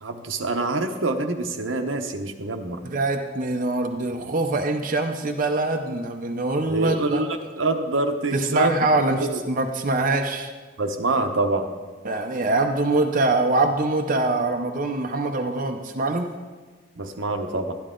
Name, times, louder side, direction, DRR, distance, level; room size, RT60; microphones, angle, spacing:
voice 1, 0.0-2.8 6.7-7.3 7.6-8.8 9.2-9.4 10.8-11.7 17.0-17.7, right 3 dB, 80° right, 5 dB, 0.9 m, -25 dB
voice 2, 2.8-7.2 8.3-10.5 12.0-16.3, right 2 dB, 40° right, 4 dB, 0.6 m, -24 dB
12.0 x 11.5 x 3.8 m, 1.4 s
head